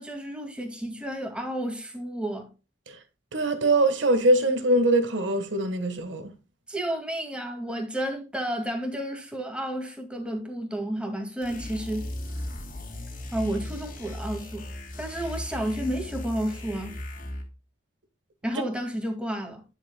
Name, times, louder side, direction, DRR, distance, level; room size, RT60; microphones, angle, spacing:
voice 1, 0.0-2.5 6.7-12.1 13.3-14.7 15.0-17.0 18.4-19.6, right 1 dB, 5° right, 2.1 m, -31 dB
voice 2, 3.3-6.3, right 1 dB, 85° right, 1.5 m, -22 dB
sound 1, 11.4-17.6, left 1 dB, 45° left, 2.4 m, -37 dB
10.5 x 7.2 x 2.2 m
head